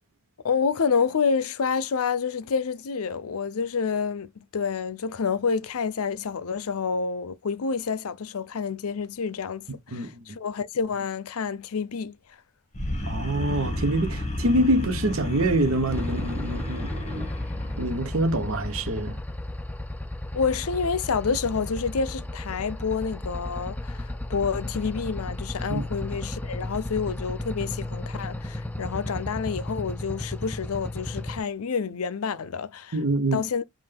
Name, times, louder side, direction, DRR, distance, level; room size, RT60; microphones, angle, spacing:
voice 1, 0.4-12.2 20.3-32.9 33.3-33.6, left 5 dB, 75° left, 0.5 m, -28 dB
voice 2, 9.9-10.2 13.1-16.9 17.2-17.3 17.8-19.2 25.7-25.8 32.9-33.5, right 1 dB, 70° right, 0.9 m, -25 dB
sound 1, 12.7-19.0, left 1 dB, 30° left, 1.7 m, -33 dB
sound 2, 15.9-31.4, left 1 dB, 5° left, 0.4 m, -34 dB
5.6 x 2.5 x 3.4 m
head